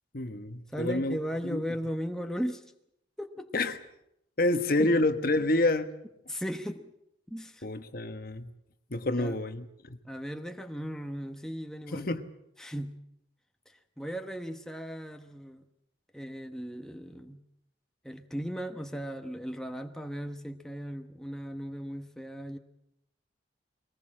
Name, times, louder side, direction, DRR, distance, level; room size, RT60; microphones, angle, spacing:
voice 1, 0.1-1.2 1.4-1.6 3.5-3.8 4.4-5.9 7.6-8.5 8.9-10.0 11.9-12.3, left 2 dB, 50° left, 9 dB, 1.2 m, -28 dB
voice 2, 0.7-2.6 3.2-3.5 4.5-4.9 6.3-6.9 7.3-7.7 9.2-9.4 10.0-12.1 12.6-12.9 13.7-15.7 16.1-17.4 18.0-22.6, equal, 5° left, 5 dB, 1.0 m, -37 dB
23.0 x 19.0 x 7.6 m, 0.80 s
head